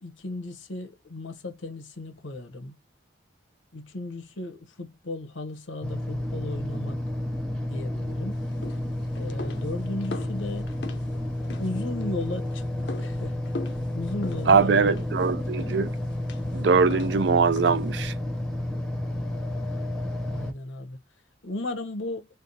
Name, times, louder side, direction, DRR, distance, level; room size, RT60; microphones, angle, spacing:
voice 1, 0.0-2.7 3.7-7.0 7.7-8.4 9.1-10.7 11.6-13.4 13.9-14.9 20.2-21.0 21.4-22.3, left 2 dB, 90° left, 1.0 m, -35 dB
sound 1, 5.8-20.5, left 1 dB, 5° left, 0.7 m, -31 dB
sound 2, 8.3-18.1, left 3 dB, 70° left, 0.7 m, -42 dB
voice 2, 14.5-15.9 16.5-18.1, right 5 dB, 65° right, 0.5 m, -21 dB
3.5 x 2.1 x 4.1 m
head